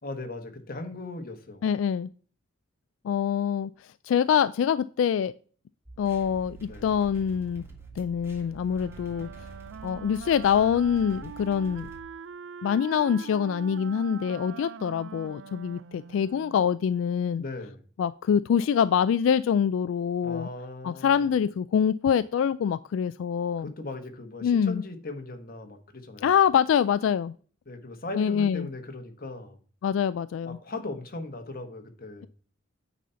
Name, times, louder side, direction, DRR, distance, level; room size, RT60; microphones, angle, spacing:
voice 1, 0.0-1.7 6.6-6.9 17.4-17.8 20.2-21.3 23.6-26.3 27.7-29.6 30.4-32.3, left 2 dB, 50° left, 6 dB, 1.3 m, -38 dB
voice 2, 1.6-2.1 3.0-3.7 4.0-5.3 6.0-7.6 8.0-9.3 9.8-11.9 12.6-17.4 18.0-20.5 20.8-23.7 24.4-24.8 26.2-27.3 28.1-28.7 29.8-30.6, left 8 dB, 85° left, 14 dB, 0.3 m, -25 dB
sound 1, 5.9-12.0, right 4 dB, 15° right, 1.8 m, -46 dB
Wind instrument woodwind instrument, 8.6-16.8, right 7 dB, 70° right, 0.4 m, -43 dB
9.2 x 4.1 x 5.6 m, 0.42 s
head